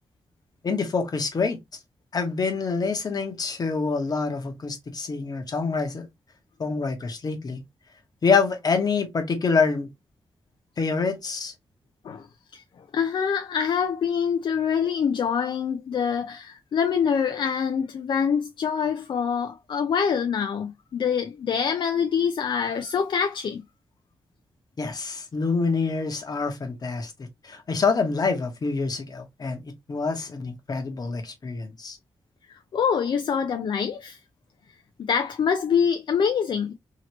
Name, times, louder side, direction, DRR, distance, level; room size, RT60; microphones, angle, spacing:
voice 1, 0.6-1.6 2.1-6.1 6.6-7.6 8.2-9.9 10.8-11.5 24.8-27.1 27.4-29.6 29.9-32.0, left 4 dB, 45° left, 1.0 m, -26 dB
voice 2, 12.5-23.6 32.5-34.2 35.1-36.7, left 7 dB, 65° left, 0.4 m, -25 dB
2.9 x 2.8 x 2.9 m
wide cardioid pair, 100°, 9 cm